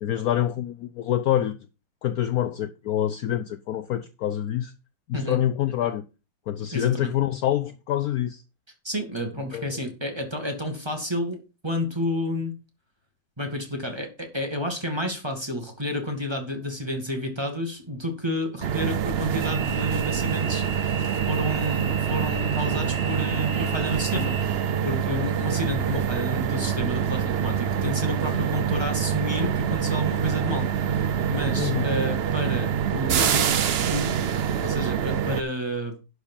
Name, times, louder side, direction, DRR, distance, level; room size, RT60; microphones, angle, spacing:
voice 1, 0.0-1.6 2.0-4.7 5.1-6.0 6.5-8.4 9.5-9.7 31.6-31.9, left 11 dB, 65° left, 1.0 m, -26 dB
voice 2, 6.7-7.1 8.8-12.5 13.4-21.0 21.3-33.6 33.9-34.1 34.6-36.0, left 1 dB, 15° right, 2.0 m, -30 dB
sound 1, 18.6-35.4, right 8 dB, 85° right, 0.5 m, -25 dB
11.5 x 4.9 x 5.6 m
omnidirectional pair, 2.0 m